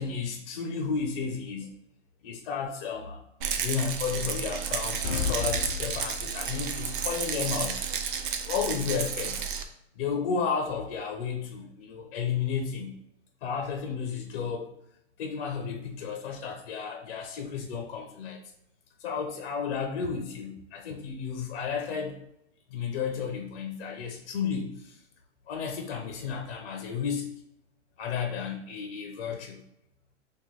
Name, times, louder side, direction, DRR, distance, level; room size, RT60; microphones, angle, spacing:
voice 1, 0.0-1.7 2.2-3.2 3.6-7.8 8.4-9.5 10.0-12.9 13.4-14.7 15.2-18.4 19.0-22.2 22.7-25.0 25.5-27.3 28.0-29.6, left 6 dB, 50° left, 3 dB, 0.8 m, -32 dB
Rattle, 3.4-9.6, right 7 dB, 45° right, 0.4 m, -32 dB
sound 1, 5.0-6.7, left 7 dB, 85° left, 0.5 m, -32 dB
3.0 x 2.5 x 3.8 m, 0.79 s
hypercardioid pair, 140°, 37 cm